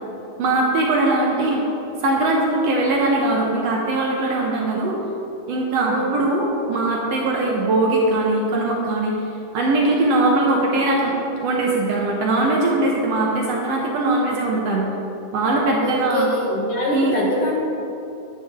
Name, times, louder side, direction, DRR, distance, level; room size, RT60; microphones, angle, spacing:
voice 1, 0.4-1.6 2.0-5.0 5.5-9.1 9.5-11.2 11.4-14.9 15.3-16.3 16.9-17.2, right 2 dB, 70° right, -2 dB, 1.8 m, -20 dB
voice 2, 15.8-17.6, left 1 dB, 60° left, -3 dB, 1.8 m, -23 dB
10.5 x 7.9 x 3.6 m, 2.8 s
omnidirectional pair, 3.5 m